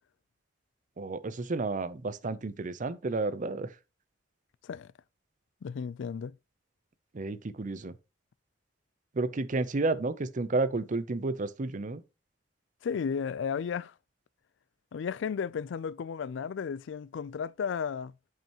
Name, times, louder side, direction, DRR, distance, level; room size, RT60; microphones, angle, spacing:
voice 1, 1.0-3.7 7.1-7.9 9.2-12.0, right 3 dB, 45° right, 0.6 m, -31 dB
voice 2, 5.6-6.3 12.8-13.9 14.9-18.1, left 6 dB, 80° left, 0.4 m, -34 dB
7.6 x 5.4 x 2.9 m
head